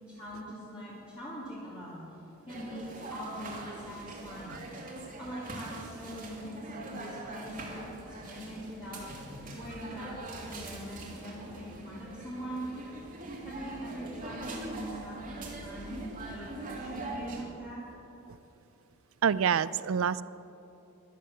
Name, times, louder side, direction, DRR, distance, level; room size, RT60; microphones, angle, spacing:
voice 1, 0.1-2.0 2.5-4.6 5.0-9.0 9.5-12.7 13.4-17.8, equal, 25° left, -9 dB, 2.5 m, -42 dB
sound 1, 2.5-17.4, right 2 dB, 40° right, 2.3 m, -42 dB
voice 2, 19.2-20.2, right 7 dB, 60° right, 18 dB, 0.4 m, -27 dB
12.5 x 11.5 x 7.1 m, 3.0 s
head